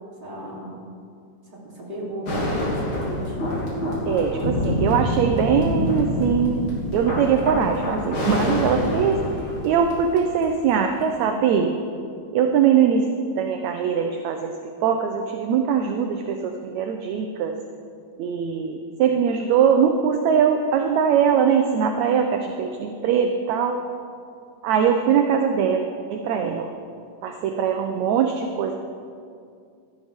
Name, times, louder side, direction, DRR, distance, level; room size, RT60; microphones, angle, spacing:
voice 1, 0.2-0.8 1.5-3.3, right 1 dB, 15° right, -6 dB, 3.1 m, -35 dB
sound 1, 2.3-10.4 11.0-11.1, left 1 dB, 55° left, 4.2 m, -26 dB
voice 2, 4.1-9.2 9.6-11.7 12.3-13.1 13.4-14.5 14.8-17.5 18.2-23.8 24.6-26.7 27.2-28.7, right 7 dB, 75° right, 4 dB, 1.8 m, -21 dB
16.5 x 13.0 x 3.6 m, 2.3 s
omnidirectional pair, 3.7 m